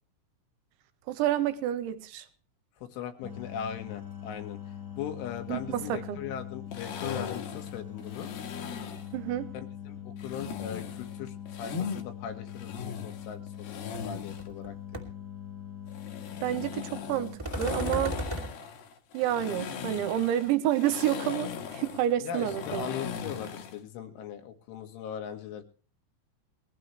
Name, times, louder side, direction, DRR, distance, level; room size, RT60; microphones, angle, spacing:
voice 1, 1.1-2.2 5.5-6.2 9.1-9.5 16.4-18.1 19.1-22.9, right 12 dB, 80° right, 3.3 m, -29 dB
voice 2, 2.8-4.6 5.0-8.3 9.5-14.8 22.2-25.6, left 8 dB, 80° left, 4.2 m, -39 dB
sound 1, 3.2-17.4, left 10 dB, 30° left, 1.6 m, -42 dB
sound 2, 6.7-9.1 10.2-12.0 12.5-14.5 15.9-23.8, left 7 dB, 65° left, 2.8 m, -38 dB
sound 3, 13.9-14.0 14.4-14.7 14.9-15.0 17.4-18.5, right 1 dB, 10° right, 1.5 m, -34 dB
21.0 x 15.5 x 3.2 m
omnidirectional pair, 5.5 m